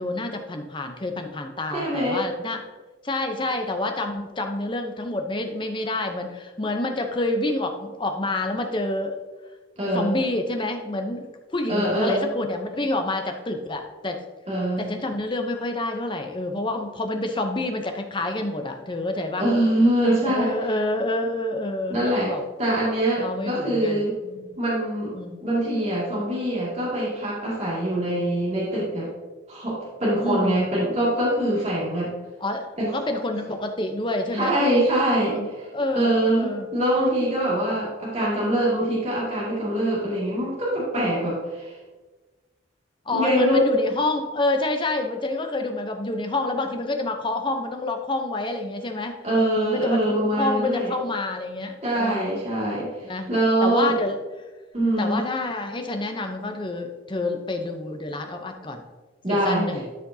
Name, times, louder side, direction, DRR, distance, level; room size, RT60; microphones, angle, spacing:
voice 1, 0.0-2.6 3.0-9.2 9.9-11.3 11.5-14.2 14.8-19.5 20.2-22.4 23.2-24.5 25.1-25.4 30.2-30.6 32.4-34.6 35.2-35.5 35.7-36.7 43.1-49.2 49.6-52.4 53.0-53.3 53.6-54.2 55.0-58.8 59.3-59.8, left 2 dB, 25° left, 5 dB, 0.7 m, -28 dB
voice 2, 1.7-2.2 9.8-10.2 11.7-12.3 14.5-14.9 19.4-20.6 21.9-24.1 24.6-25.1 25.4-29.1 29.5-32.1 32.8-33.0 34.3-35.4 35.9-41.7 43.1-43.6 49.2-50.9 51.8-52.9 53.3-53.9 54.7-55.2 59.2-59.7, right 1 dB, 35° right, -7 dB, 2.2 m, -23 dB
12.5 x 5.1 x 2.7 m, 1.3 s
head